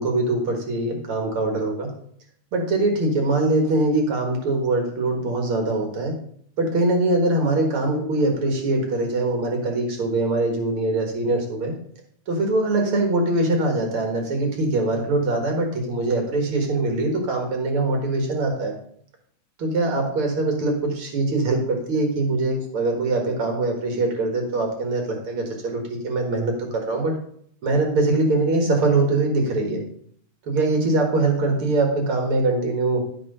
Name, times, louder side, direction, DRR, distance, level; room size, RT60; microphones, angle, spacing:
voice 1, 0.0-1.9 2.5-6.1 6.6-11.7 12.3-18.7 19.6-27.1 27.6-29.8 30.5-33.0, right 2 dB, 75° right, 2 dB, 1.2 m, -22 dB
13.0 x 4.5 x 5.4 m, 0.63 s
omnidirectional pair, 4.9 m